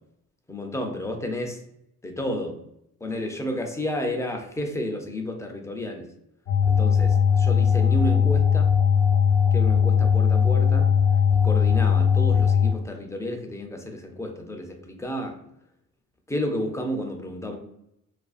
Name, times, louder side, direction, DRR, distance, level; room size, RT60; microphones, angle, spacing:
voice 1, 0.5-1.6 2.0-2.6 3.0-6.1 6.7-8.7 9.5-10.9 11.3-15.4 16.3-17.6, left 1 dB, 10° left, 3 dB, 0.4 m, -31 dB
sound 1, 6.5-12.7, left 7 dB, 80° left, 0.5 m, -19 dB
2.4 x 2.3 x 2.4 m, 0.80 s
cardioid pair, 90°, 30 cm